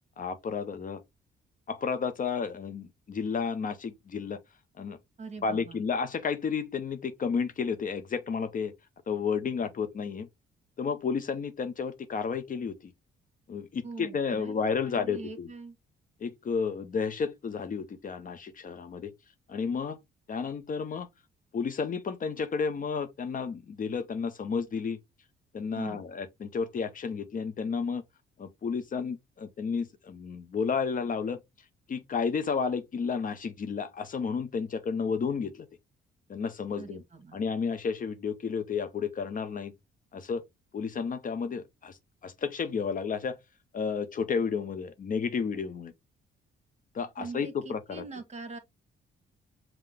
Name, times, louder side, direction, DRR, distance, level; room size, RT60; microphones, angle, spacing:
voice 1, 0.2-1.0 1.7-4.4 4.8-5.0 5.4-8.7 9.1-10.3 10.8-12.9 13.5-15.5 16.2-19.1 19.5-20.0 20.3-21.1 21.5-25.0 25.5-28.0 28.4-31.4 31.9-35.7 36.3-37.0 37.3-39.7 40.1-40.4 40.7-43.4 43.7-45.9 46.9-48.0, left 5 dB, 45° left, 0.7 m, -32 dB
voice 2, 5.2-5.8 13.8-15.8 25.7-26.0 36.8-37.4 47.2-48.6, right 4 dB, 35° right, 1.3 m, -43 dB
5.6 x 2.3 x 3.5 m
cardioid pair, 90°, 20 cm